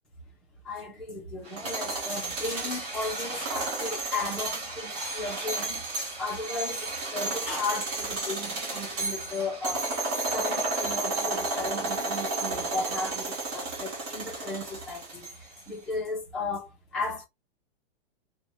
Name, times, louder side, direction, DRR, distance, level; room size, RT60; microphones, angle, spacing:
voice 1, 0.7-9.9 10.3-15.3 15.7-17.2, left 3 dB, ahead, 0.6 m, -35 dB
sound 1, 1.5-15.6, right 3 dB, 35° right, 1.2 m, -32 dB
3.2 x 2.3 x 3.9 m
supercardioid pair, 175°, 33 cm